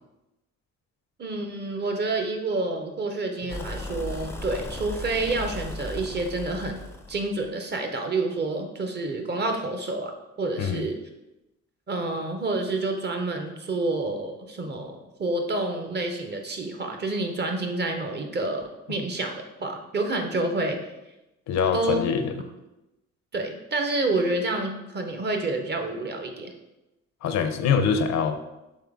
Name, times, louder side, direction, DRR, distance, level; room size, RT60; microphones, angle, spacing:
voice 1, 1.2-6.8 7.1-10.1 10.4-11.0 11.9-20.8 21.7-22.0 23.3-26.5, right 2 dB, 35° right, 5 dB, 0.6 m, -28 dB
sound 1, 3.5-7.5, left 1 dB, 10° left, 0.4 m, -36 dB
voice 2, 10.6-10.9 21.5-22.3 27.2-28.4, left 6 dB, 65° left, 8 dB, 0.5 m, -24 dB
3.7 x 3.3 x 3.5 m, 0.95 s
cardioid pair, 90°, 30 cm